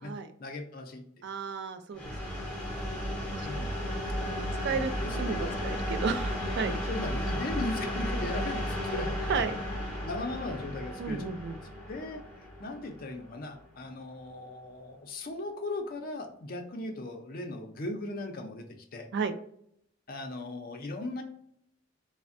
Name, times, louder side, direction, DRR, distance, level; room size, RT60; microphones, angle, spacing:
voice 1, 0.4-1.0 3.4-3.8 4.7-5.6 6.9-9.5 9.8-11.4 11.9-18.6 18.9-19.1 20.1-21.2, left 2 dB, 45° left, 4 dB, 0.5 m, -38 dB
voice 2, 1.2-2.4 3.3-3.7 4.2-6.7 8.9-9.0 9.3-9.5 11.0-11.6 19.1-19.3, right 5 dB, 55° right, 9 dB, 0.3 m, -34 dB
sound 1, 1.9-13.6, equal, 5° left, 0.9 m, -34 dB
3.3 x 2.1 x 2.5 m, 0.69 s
head